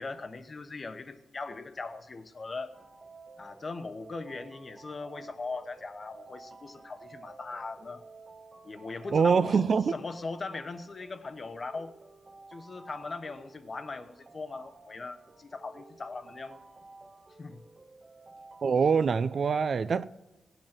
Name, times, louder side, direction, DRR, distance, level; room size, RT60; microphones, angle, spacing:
voice 1, 0.0-2.7 3.4-8.0 8.6-9.6 9.9-11.9 12.5-16.6 17.4-17.6, left 3 dB, 35° left, 1.0 m, -39 dB
sound 1, 2.7-19.5, right 3 dB, 25° right, 1.4 m, -53 dB
voice 2, 9.1-9.9 18.6-20.0, right 5 dB, 50° right, 0.5 m, -24 dB
17.5 x 9.0 x 6.0 m
wide cardioid pair, 120°, 0 cm